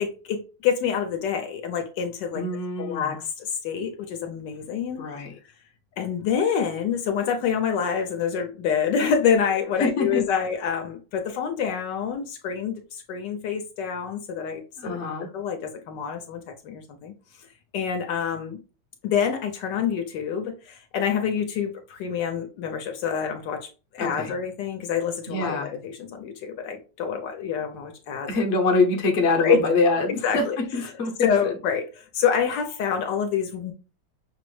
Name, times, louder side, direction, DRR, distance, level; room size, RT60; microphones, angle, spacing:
voice 1, 0.0-2.4 2.8-5.1 6.0-15.0 15.3-17.1 17.7-18.6 19.0-28.3 29.4-29.6 30.1-30.6 31.2-33.7, left 7 dB, 75° left, 1.2 m, -27 dB
voice 2, 2.3-3.2 5.0-5.3 9.8-10.2 14.8-15.3 24.0-24.3 25.3-25.7 28.3-31.1 31.4-31.6, left 3 dB, 50° left, 0.8 m, -24 dB
6.0 x 2.0 x 3.1 m
omnidirectional pair, 2.1 m